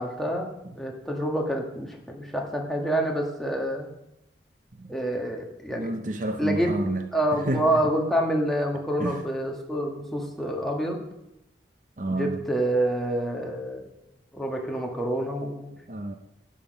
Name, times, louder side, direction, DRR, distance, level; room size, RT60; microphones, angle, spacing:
voice 1, 0.0-3.9 4.9-5.9 6.4-6.7 7.1-11.0 12.1-13.9 14.3-15.7, right 1 dB, ahead, 1.6 m, -27 dB
voice 2, 5.7-7.8 9.0-9.2 12.0-12.4 15.9-16.1, right 2 dB, 45° right, 0.7 m, -30 dB
12.5 x 8.7 x 5.4 m
head